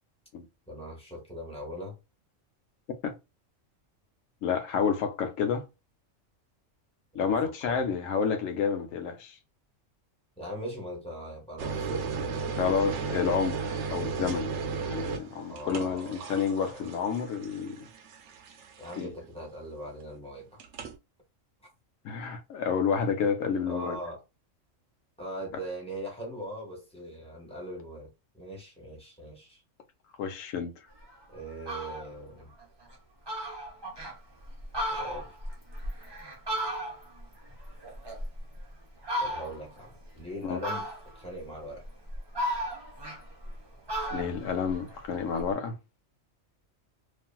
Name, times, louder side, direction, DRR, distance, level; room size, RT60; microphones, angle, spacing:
voice 1, 0.7-2.0 7.2-7.4 7.6-7.8 10.4-12.5 15.5-16.3 16.6-16.9 18.8-20.6 23.6-24.2 25.2-29.6 31.3-32.5 35.0-35.3 39.2-40.9 41.1-41.8, equal, 5° left, 1.2 m, -40 dB
voice 2, 4.4-5.6 7.1-9.3 12.6-14.5 14.9-17.9 19.0-19.1 22.0-24.0 30.2-30.7 40.4-40.6 44.1-45.7, left 6 dB, 80° left, 1.1 m, -29 dB
sound 1, 11.6-19.3 20.6-21.0, right 5 dB, 70° right, 0.9 m, -35 dB
Fowl, 31.0-31.1 31.5-32.1 32.6-32.7 32.9-33.0 33.3-34.2 34.6-37.2 37.6-38.6 39.0-39.7 40.6-41.3 41.8-43.6 43.9-45.5, equal, 25° right, 0.7 m, -34 dB
3.0 x 2.5 x 2.2 m
omnidirectional pair, 1.3 m